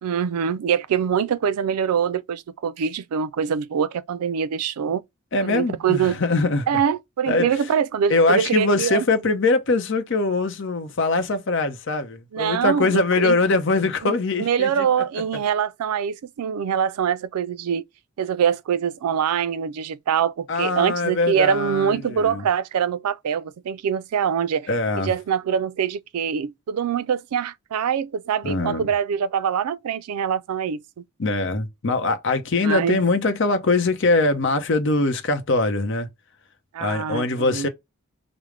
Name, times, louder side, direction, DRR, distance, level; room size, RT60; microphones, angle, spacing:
voice 1, 0.0-5.0 5.4-6.2 6.7-9.0 12.3-13.4 14.0-14.1 14.4-17.8 18.2-24.7 25.0-31.0 32.6-33.0 36.7-37.7, right 7 dB, 85° right, 0.4 m, -24 dB
voice 2, 5.3-6.7 7.3-7.7 8.1-14.9 20.5-22.4 24.7-25.1 28.4-28.9 31.2-36.1 36.8-37.7, left 3 dB, 55° left, 0.7 m, -22 dB
4.9 x 2.0 x 3.2 m
head